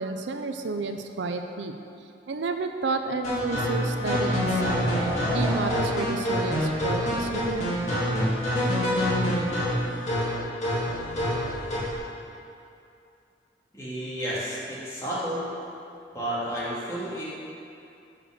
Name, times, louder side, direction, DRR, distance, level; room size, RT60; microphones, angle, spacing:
voice 1, 0.0-1.7 2.3-4.9 5.3-7.8, right 4 dB, 85° right, 6 dB, 0.5 m, -31 dB
sound 1, 3.2-12.0, equal, 40° left, 2.0 m, -26 dB
voice 2, 13.7-15.5 16.1-17.2, right 1 dB, 15° left, -9 dB, 1.9 m, -31 dB
6.5 x 5.0 x 6.2 m, 2.6 s
head